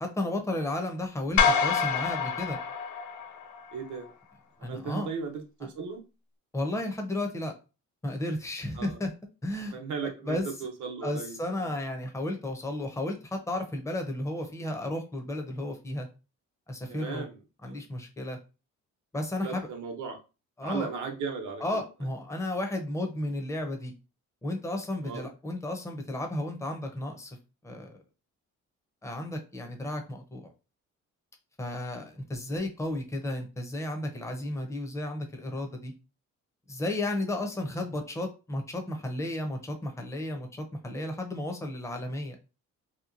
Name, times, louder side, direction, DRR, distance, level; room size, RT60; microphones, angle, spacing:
voice 1, 0.0-2.6 4.6-5.1 6.5-7.5 8.0-9.1 9.4-10.5 11.0-16.1 16.7-17.3 17.6-18.4 19.1-19.7 20.6-20.9 21.6-23.9 24.4-27.4 27.6-28.0 29.0-30.5 31.6-35.9 36.7-42.4, left 1 dB, 10° left, 4 dB, 0.6 m, -33 dB
sound 1, 1.4-3.7, left 6 dB, 70° left, 0.5 m, -26 dB
voice 2, 3.7-4.1 4.6-6.0 8.8-9.0 9.7-11.7 16.9-17.4 17.7-17.8 19.3-20.2 20.6-21.8 25.0-25.2 37.7-37.9, right 5 dB, 75° right, 5 dB, 0.8 m, -36 dB
2.9 x 2.2 x 2.5 m, 0.31 s
cardioid pair, 90°, 30 cm